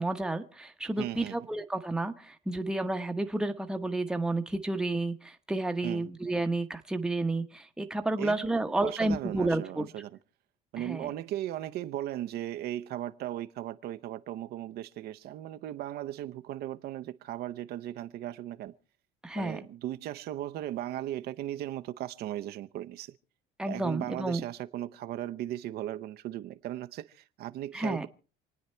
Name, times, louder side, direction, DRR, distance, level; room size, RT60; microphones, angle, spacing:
voice 1, 0.0-9.9 10.8-11.1 19.2-19.6 23.6-24.4 27.7-28.1, right 2 dB, 5° right, 0.9 m, -31 dB
voice 2, 1.0-1.4 5.8-6.1 8.2-10.1 10.7-18.7 19.4-23.1 23.7-28.1, right 13 dB, 60° right, 0.7 m, -37 dB
28.0 x 9.5 x 4.4 m
cardioid pair, 145°, 18 cm